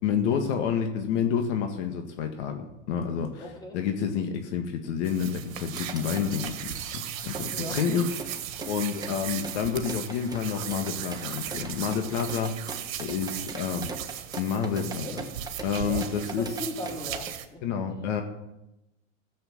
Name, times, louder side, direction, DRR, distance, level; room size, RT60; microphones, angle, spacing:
voice 1, 0.0-6.6 6.9-8.4 8.6-12.6 13.0-13.9 14.4-15.1 15.6-16.5 17.6-18.2, left 7 dB, 60° left, 5 dB, 1.8 m, -29 dB
voice 2, 3.4-3.8 7.5-7.8 13.2-13.4 13.7-14.1 14.5-15.2 15.7-17.6, left 1 dB, 10° left, -1 dB, 3.4 m, -40 dB
sound 1, 5.0-17.5, right 10 dB, 80° right, 1.6 m, -37 dB
sound 2, 5.7-17.3, right 4 dB, 10° right, 1.3 m, -41 dB
sound 3, 6.1-9.3 9.6-11.7 12.2-12.8 13.2-13.7 14.1-14.7 15.1-15.7, right 9 dB, 35° right, 2.3 m, -50 dB
15.0 x 7.7 x 7.2 m, 0.92 s
supercardioid pair, 135°, 39 cm